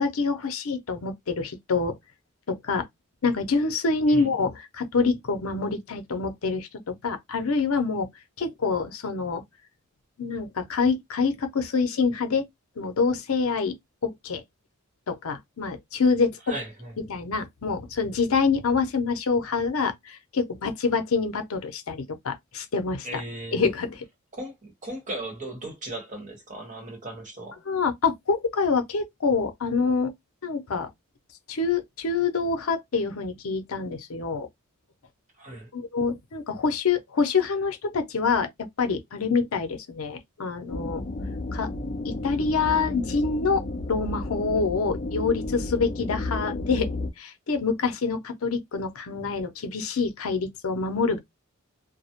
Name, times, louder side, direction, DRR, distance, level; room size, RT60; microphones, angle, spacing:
voice 1, 0.0-2.0 2.5-2.9 3.2-8.1 8.4-9.4 10.2-12.4 12.8-13.7 14.0-14.4 15.1-16.4 17.1-23.2 23.5-24.0 27.7-30.1 30.4-30.9 31.5-34.5 35.7-38.5 38.8-41.0 41.5-41.7 42.0-43.6 43.9-46.9 47.2-51.2, left 4 dB, 80° left, 0.6 m, -26 dB
voice 2, 16.5-16.9 23.0-23.6 24.3-27.6 35.4-35.7, right 1 dB, 35° right, 1.0 m, -37 dB
sound 1, 40.7-47.1, left 2 dB, 35° left, 0.4 m, -32 dB
2.2 x 2.1 x 2.8 m
head